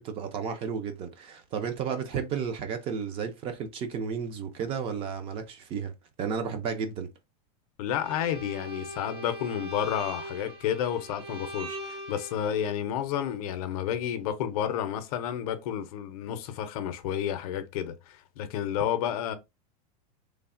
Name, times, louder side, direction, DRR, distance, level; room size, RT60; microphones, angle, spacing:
voice 1, 0.0-7.1, right 6 dB, 25° right, 0.4 m, -33 dB
voice 2, 7.8-19.3, left 10 dB, 60° left, 0.5 m, -31 dB
Bowed string instrument, 8.0-12.7, equal, 70° right, 1.1 m, -41 dB
3.1 x 2.0 x 2.4 m
supercardioid pair, 150°, 21 cm